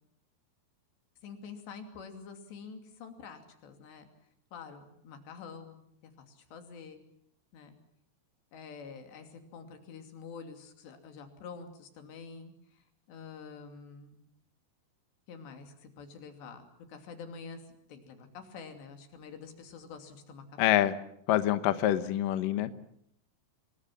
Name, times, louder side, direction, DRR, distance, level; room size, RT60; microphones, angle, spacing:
voice 1, 1.2-4.1 4.5-7.0 7.5-7.7 8.5-14.2 15.3-17.6 17.9-20.9, left 5 dB, 90° left, 6 dB, 4.9 m, -47 dB
voice 2, 20.6-20.9 21.3-22.7, left 13 dB, 65° left, 11 dB, 2.4 m, -26 dB
26.5 x 22.5 x 7.4 m, 0.71 s
omnidirectional pair, 4.8 m